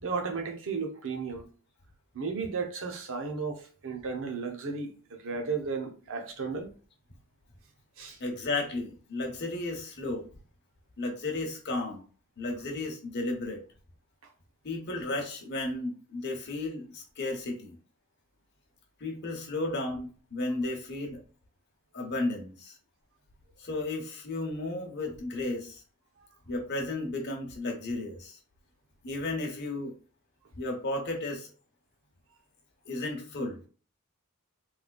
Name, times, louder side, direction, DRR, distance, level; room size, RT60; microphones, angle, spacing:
voice 1, 0.0-1.4 2.1-6.7 8.0-8.2, right 4 dB, 65° right, 0.8 m, -34 dB
voice 2, 8.2-10.3 11.0-12.0 12.4-13.6 14.6-17.8 19.0-21.2 21.9-22.7 23.6-25.8 26.5-28.4 29.0-29.9 30.5-31.5 32.9-33.6, left 2 dB, 50° left, 1.0 m, -33 dB
3.5 x 3.3 x 2.3 m
head